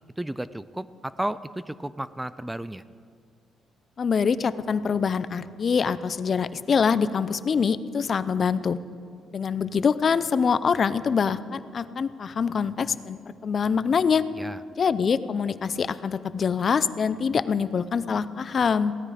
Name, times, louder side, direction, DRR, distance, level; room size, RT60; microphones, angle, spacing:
voice 1, 0.2-2.8 14.4-14.6, right 1 dB, 10° right, 16 dB, 0.4 m, -33 dB
voice 2, 4.0-8.8 9.3-14.2 14.8-18.9, left 6 dB, 45° left, 15 dB, 0.5 m, -24 dB
17.0 x 13.0 x 5.0 m, 2.2 s
cardioid pair, 90°, 0 cm